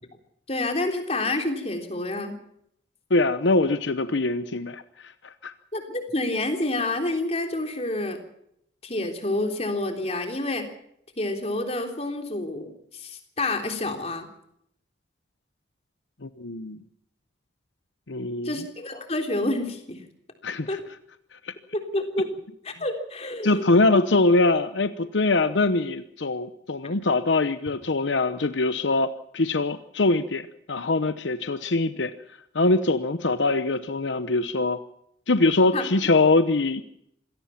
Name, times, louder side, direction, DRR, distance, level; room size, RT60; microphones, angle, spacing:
voice 1, 0.5-2.4 5.7-8.2 8.8-10.7 11.2-14.3 18.4-20.0 20.7-20.8 21.7-22.3 22.6-23.7 26.8-27.0 35.7-35.8, left 2 dB, 35° left, 4 dB, 3.6 m, -28 dB
voice 2, 3.1-5.5 16.2-16.8 18.1-18.5 20.4-20.8 21.3-21.5 23.4-32.1 32.5-34.8 35.3-36.8, left 2 dB, 75° left, 11 dB, 0.9 m, -23 dB
26.0 x 18.0 x 5.9 m, 0.74 s
head